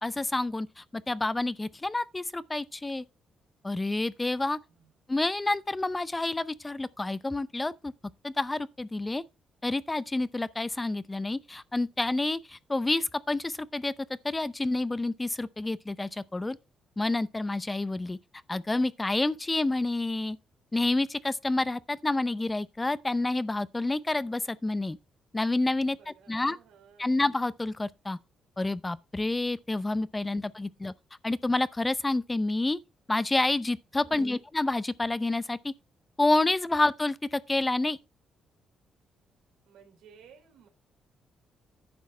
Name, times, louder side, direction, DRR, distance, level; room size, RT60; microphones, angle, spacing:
voice 1, 0.0-3.0 3.6-4.6 5.1-7.9 8.2-9.2 9.6-13.9 14.2-16.6 17.0-18.2 18.5-20.4 20.7-25.0 25.3-26.0 26.3-26.6 27.0-28.2 28.6-30.9 31.2-32.8 33.1-35.7 36.2-38.0, left 2 dB, 15° left, 0.5 m, -28 dB
voice 2, 26.0-27.2 34.0-34.4 39.6-40.7, right 7 dB, 85° right, 2.9 m, -56 dB
10.5 x 6.2 x 4.4 m
cardioid pair, 90°, 0 cm